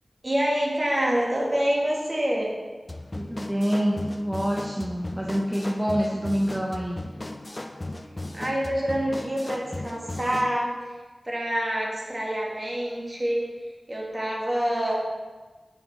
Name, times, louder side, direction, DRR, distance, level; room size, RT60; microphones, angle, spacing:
voice 1, 0.2-2.5 8.3-11.0 11.2-14.9, equal, 35° right, -3 dB, 1.9 m, -27 dB
sound 1, 2.9-10.6, left 1 dB, 30° left, 0.4 m, -36 dB
voice 2, 3.1-7.0, equal, 15° right, -1 dB, 0.7 m, -26 dB
6.4 x 6.3 x 3.5 m, 1.3 s
cardioid pair, 45°, 0 cm